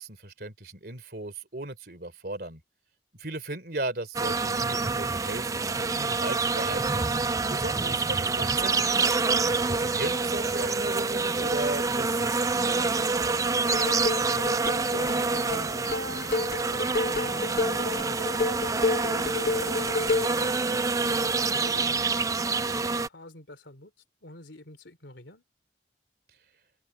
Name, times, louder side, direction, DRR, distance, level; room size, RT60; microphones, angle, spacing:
voice 1, 0.0-2.6 3.2-7.1 7.4-9.2 9.7-13.4, right 2 dB, 55° right, 3.3 m, -37 dB
sound 1, 4.1-23.1, right 4 dB, 20° right, 0.4 m, -27 dB
sound 2, 13.5-20.4, left 3 dB, 55° left, 1.0 m, -30 dB
voice 2, 14.1-19.3 19.7-22.4 22.6-23.9 24.2-25.4, left 1 dB, 90° left, 3.3 m, -47 dB
open air
head